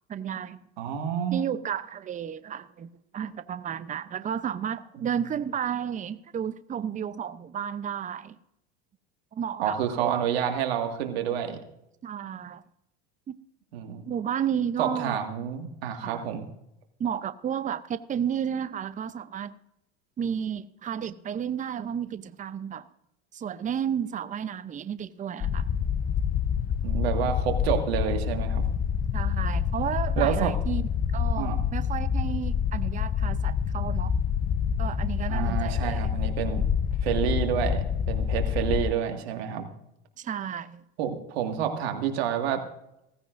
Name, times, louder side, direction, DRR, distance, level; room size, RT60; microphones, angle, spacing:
voice 1, 0.1-0.6 1.3-8.3 9.3-10.3 12.0-12.6 13.3-13.4 14.1-15.3 15.9-16.2 17.0-19.5 20.2-22.9 23.3-25.7 29.1-34.1 34.8-36.1 40.2-40.8, right 8 dB, 25° right, 0.6 m, -32 dB
voice 2, 0.8-1.4 5.0-5.1 9.6-11.6 13.7-14.1 14.8-16.5 26.8-28.6 30.2-30.5 31.4-31.6 35.3-36.6 37.0-39.7 41.0-42.6, right 9 dB, 80° right, 2.0 m, -29 dB
sound 1, 25.4-38.9, left 7 dB, 25° left, 0.6 m, -27 dB
16.5 x 15.0 x 2.6 m
hypercardioid pair, 95°, 31 cm